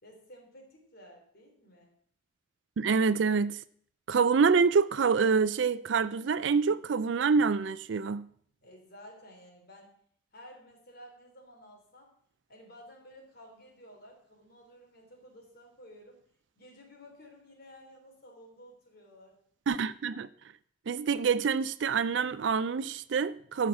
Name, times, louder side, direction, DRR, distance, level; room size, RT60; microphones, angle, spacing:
voice 1, 0.0-1.9 8.6-9.9 10.3-12.1 12.5-16.2 16.6-19.4, equal, 55° left, 3.6 m, -53 dB
voice 2, 2.8-3.6 4.1-8.2 19.7-20.3 20.9-23.7, right 5 dB, 70° right, 0.4 m, -26 dB
13.5 x 5.7 x 7.2 m
head